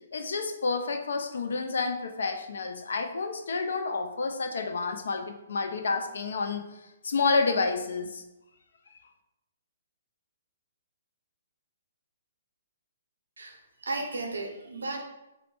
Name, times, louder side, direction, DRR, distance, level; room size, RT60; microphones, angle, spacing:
voice 1, 0.1-6.6 7.0-8.2, left 4 dB, 70° left, 6 dB, 0.3 m, -29 dB
voice 2, 13.4-15.0, right 2 dB, 80° right, 2 dB, 0.6 m, -35 dB
2.4 x 2.1 x 3.2 m, 0.95 s
figure-of-eight pair, 130°, 0 cm